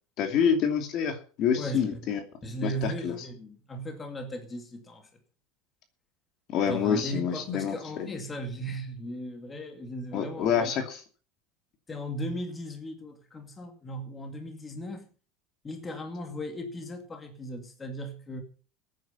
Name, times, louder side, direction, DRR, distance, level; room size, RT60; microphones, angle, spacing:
voice 1, 0.2-2.2 2.6-3.2 6.5-8.1 10.1-11.0, left 7 dB, 45° left, 6 dB, 2.7 m, -27 dB
voice 2, 1.5-1.9 2.4-5.1 6.7-10.8 11.9-15.1 15.6-18.4, equal, 15° left, 5 dB, 2.3 m, -37 dB
16.5 x 9.4 x 5.8 m, 0.39 s
cardioid pair, 155°, 0 cm